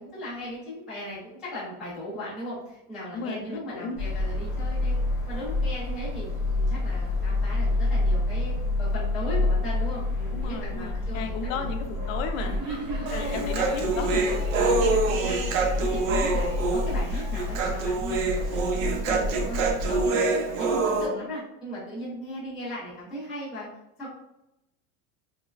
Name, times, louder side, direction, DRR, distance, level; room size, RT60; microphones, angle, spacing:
voice 1, 0.0-5.0 5.2-6.3 6.5-8.5 8.8-11.7 12.6-13.4 14.7-15.4 15.9-23.7 24.0-24.1, equal, ahead, -14 dB, 0.4 m, -37 dB
voice 2, 3.1-4.0 10.3-12.8 13.1-14.3, left 5 dB, 70° left, 6 dB, 0.5 m, -34 dB
sound 1, 4.0-20.1, left 2 dB, 15° left, 0.9 m, -28 dB
Speech / Shout / Subway metro underground, 12.3-17.6, equal, 50° right, 0.9 m, -39 dB
Human voice, 13.1-21.1, right 3 dB, 75° right, 0.6 m, -26 dB
3.1 x 2.1 x 2.3 m, 0.87 s
supercardioid pair, 180°, 40 cm